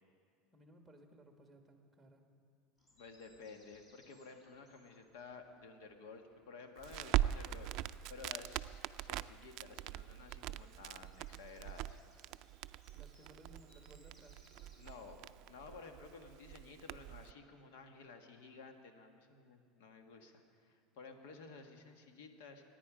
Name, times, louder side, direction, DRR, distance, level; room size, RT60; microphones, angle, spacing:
voice 1, 0.5-2.2 12.9-14.4, right 1 dB, 5° right, 3 dB, 1.7 m, -60 dB
sound 1, 2.8-15.3, equal, 30° left, 4.3 m, -71 dB
voice 2, 2.9-12.0 14.8-15.2 15.4-22.6, left 4 dB, 80° left, 5 dB, 1.6 m, -54 dB
Crackle, 6.8-17.3, right 14 dB, 60° right, 0.3 m, -41 dB
24.5 x 10.0 x 5.1 m, 2.3 s
supercardioid pair, 120°, 0 cm